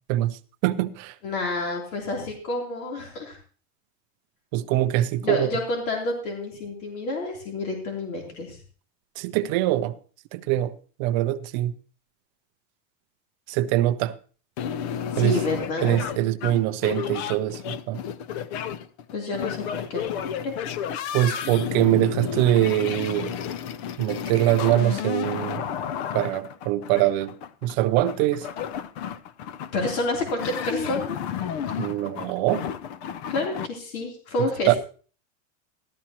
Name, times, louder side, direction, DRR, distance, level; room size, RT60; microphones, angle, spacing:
voice 1, 0.1-1.1 4.5-5.6 9.2-9.9 10.3-11.7 13.5-14.1 15.2-15.4 15.8-18.0 21.1-23.3 24.0-25.6 26.1-27.3 27.6-28.5 31.8-32.6 34.7-34.8, right 14 dB, 35° right, 0.5 m, -23 dB
voice 2, 1.2-3.4 5.2-8.6 15.1-16.0 19.1-20.5 29.7-31.2 33.3-34.8, left 2 dB, 80° left, 3.4 m, -29 dB
sound 1, 14.6-33.7, left 8 dB, 50° left, 0.6 m, -32 dB
14.0 x 12.5 x 2.9 m
supercardioid pair, 165°, 42 cm